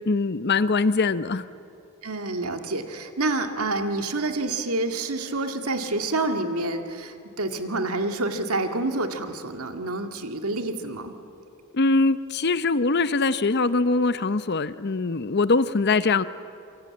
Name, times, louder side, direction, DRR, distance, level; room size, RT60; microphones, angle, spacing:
voice 1, 0.1-1.4 11.7-16.2, left 3 dB, 50° left, 15 dB, 0.7 m, -22 dB
voice 2, 2.0-11.2, right 2 dB, 90° right, 6 dB, 2.0 m, -28 dB
27.0 x 24.0 x 8.7 m, 2.6 s
head